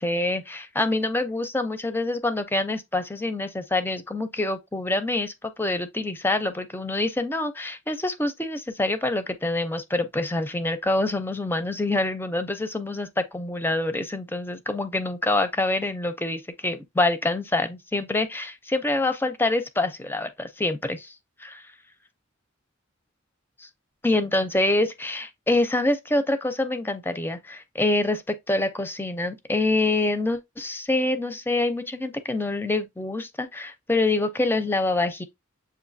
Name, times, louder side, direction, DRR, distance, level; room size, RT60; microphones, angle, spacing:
voice 1, 0.0-21.1 21.4-21.6 23.6-23.7 24.0-35.2, left 2 dB, 10° left, 0.5 m, -26 dB
7.1 x 2.6 x 2.6 m
head